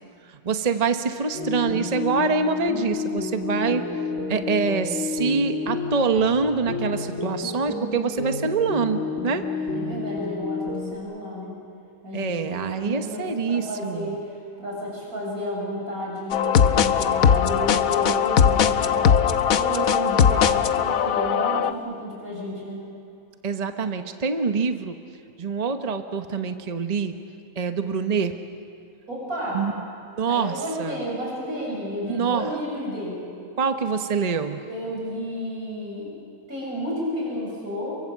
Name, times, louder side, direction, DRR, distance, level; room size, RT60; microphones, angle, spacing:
voice 1, 0.3-3.9 4.1-9.4 12.1-14.2 23.4-25.0 25.4-27.1 27.6-28.4 29.5-29.8 30.1-31.0 32.1-32.5 33.6-34.6, right 5 dB, 30° right, 7 dB, 1.0 m, -25 dB
sound 1, 1.3-11.0, left 4 dB, 60° left, 2.4 m, -30 dB
voice 2, 9.7-11.6 12.0-19.2 19.5-22.9 29.1-29.7 30.2-33.2 34.7-36.1 36.5-38.0, equal, 85° right, -4 dB, 7.9 m, -31 dB
sound 2, 16.3-21.7, left 8 dB, 75° left, 1.3 m, -20 dB
29.0 x 23.5 x 7.4 m, 2.5 s
omnidirectional pair, 1.5 m